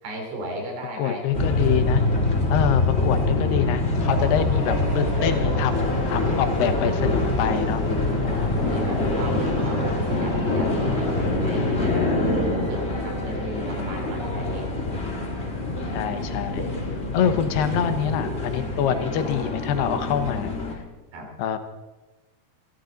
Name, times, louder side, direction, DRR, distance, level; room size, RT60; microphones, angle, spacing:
voice 1, 0.0-1.2 6.2-7.0 8.2-14.7 15.5-16.0 18.3-18.4 21.1-21.3, right 1 dB, 85° right, 2 dB, 5.1 m, -35 dB
voice 2, 1.0-2.0 2.5-7.8 9.0-9.3 15.9-16.7 17.1-20.6 21.4-21.6, left 8 dB, 80° left, 8 dB, 3.0 m, -25 dB
sound 1, 1.3-20.7, left 2 dB, 30° left, 1.1 m, -25 dB
sound 2, 4.0-11.3, left 1 dB, 5° right, 5.5 m, -35 dB
29.0 x 12.0 x 3.9 m, 1.1 s
omnidirectional pair, 4.7 m